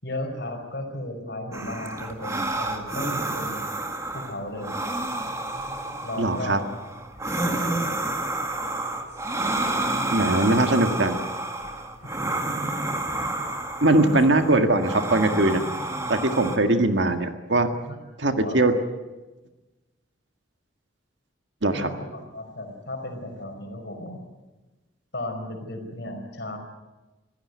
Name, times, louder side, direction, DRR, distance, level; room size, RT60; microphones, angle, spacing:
voice 1, 0.0-3.7 4.1-4.8 6.0-6.8 7.4-8.0 12.0-12.2 13.8-14.3 17.9-18.0 18.2-18.6 21.7-24.2 25.1-26.6, left 1 dB, 55° left, 5 dB, 5.0 m, -35 dB
sound 1, 1.5-16.6, right 2 dB, 15° right, 1.9 m, -30 dB
voice 2, 6.2-6.6 10.1-11.2 13.8-15.6 16.1-17.7 18.2-18.7 21.6-21.9, right 2 dB, 60° right, 7 dB, 1.8 m, -21 dB
25.5 x 16.0 x 9.4 m, 1.1 s
head